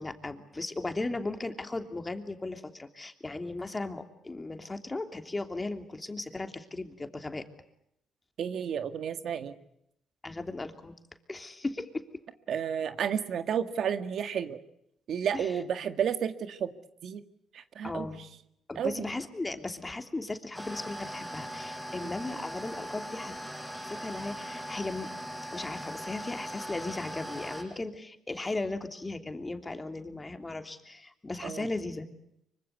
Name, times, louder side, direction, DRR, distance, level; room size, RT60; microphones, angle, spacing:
voice 1, 0.0-7.5 10.2-10.9 11.3-12.0 15.3-15.5 17.8-18.2 18.7-23.4 23.8-25.1 25.5-32.1, left 2 dB, 20° left, 6 dB, 3.0 m, -36 dB
voice 2, 8.4-9.6 12.5-14.6 15.1-16.7 17.0-17.2 17.5-18.3 18.8-19.1 22.3-22.4 31.4-31.7, right 8 dB, 65° right, 9 dB, 1.9 m, -32 dB
sound 1, 20.5-27.6, equal, 5° right, 7.0 m, -40 dB
25.5 x 24.5 x 8.3 m, 0.76 s
cardioid pair, 90°, 0 cm